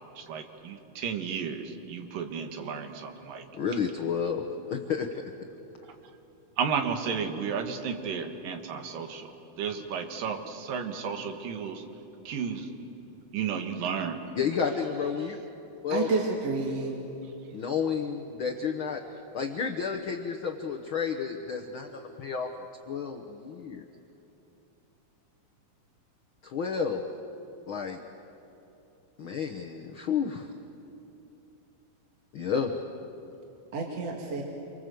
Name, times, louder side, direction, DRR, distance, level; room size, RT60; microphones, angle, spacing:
voice 1, 0.0-3.4 6.6-9.3 9.6-11.8 12.2-12.7 13.3-14.1, right 6 dB, 85° right, 5 dB, 3.3 m, -33 dB
voice 2, 3.5-5.1 14.4-15.4 15.8-16.1 17.5-19.0 19.3-22.5 22.9-23.8 26.4-27.0 27.7-28.0 29.2-30.5 32.3-32.7, left 6 dB, 65° left, 3 dB, 1.3 m, -31 dB
voice 3, 15.9-17.0 33.7-34.4, right 4 dB, 50° right, 0 dB, 3.0 m, -29 dB
28.5 x 24.5 x 7.9 m, 2.9 s
omnidirectional pair, 3.8 m